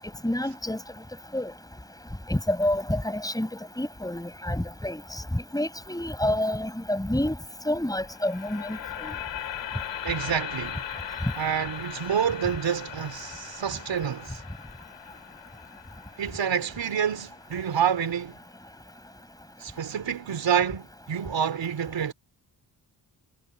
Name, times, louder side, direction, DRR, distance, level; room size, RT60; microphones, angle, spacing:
voice 1, 0.2-0.8 1.3-1.5 2.3-3.5 3.8-5.0 5.3-7.3 7.7-9.1, left 1 dB, 10° left, 5.5 m, -28 dB
sound 1, 8.1-18.2, left 9 dB, 90° left, 2.3 m, -39 dB
voice 2, 10.0-10.8 11.4-14.4 16.2-18.4 19.6-22.1, right 8 dB, 85° right, 3.7 m, -28 dB
cardioid pair, 65°, 43 cm